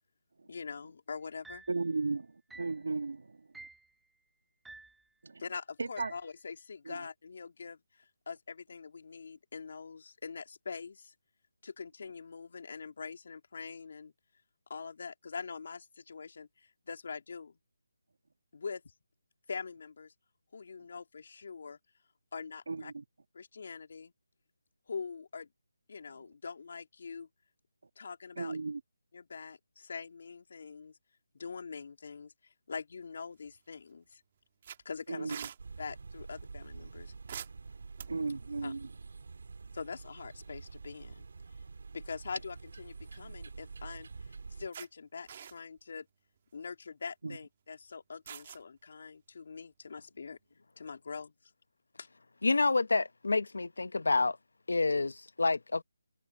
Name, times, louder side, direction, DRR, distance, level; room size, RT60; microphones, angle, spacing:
voice 1, 0.5-1.6 5.4-11.1 11.6-14.1 14.7-17.6 18.5-18.8 19.5-20.1 20.5-21.8 22.3-22.9 23.3-24.1 24.9-25.5 25.9-27.3 28.0-28.6 29.1-31.0 31.3-34.2 34.8-35.3 35.8-37.1 38.6-38.7 39.7-41.3 41.9-44.1 44.6-46.1 46.5-50.4 50.8-51.3 52.0-52.1, left 5 dB, 45° left, 3.3 m, -43 dB
sound 1, 1.4-1.8 2.5-2.8 3.5-3.9 4.6-5.0 6.0-6.3, right 3 dB, ahead, 1.0 m, -51 dB
voice 2, 1.7-3.7 5.2-5.4 5.8-6.1 6.8-7.1 22.7-23.0 28.4-28.8 35.1-35.5 38.1-38.9 47.2-47.4, right 3 dB, 70° right, 2.8 m, -36 dB
sound 2, 33.3-33.8 34.1-34.2 34.6-35.6 37.3-38.4 40.1-40.3 40.6-40.7 42.7-43.4 43.9-44.0 44.7-44.9 45.3-45.8 46.4-46.6 48.3-48.6, right 8 dB, 25° right, 2.1 m, -46 dB
sound 3, 35.6-44.7, right 4 dB, 55° right, 4.7 m, -47 dB
voice 3, 52.4-54.4 54.7-55.8, left 3 dB, 80° left, 1.0 m, -28 dB
hypercardioid pair, 175°, 0 cm